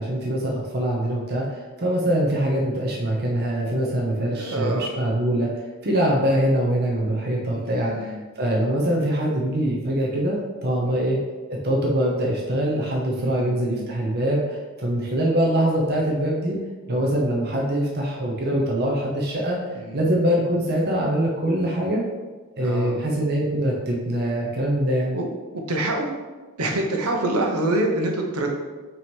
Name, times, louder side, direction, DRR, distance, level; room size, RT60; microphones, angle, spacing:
voice 1, 0.0-5.5 5.8-11.2 11.6-16.6 16.9-19.6 19.9-22.0 22.6-25.2, right 1 dB, 45° right, -2 dB, 0.9 m, -23 dB
voice 2, 4.3-4.9 7.5-8.2 10.9-11.0 13.2-13.9 16.9-17.1 19.7-20.1 22.6-23.0 25.1-25.3 25.5-26.1 26.6-28.5, right 1 dB, 85° right, 2 dB, 1.0 m, -27 dB
5.7 x 3.1 x 5.3 m, 1.3 s
head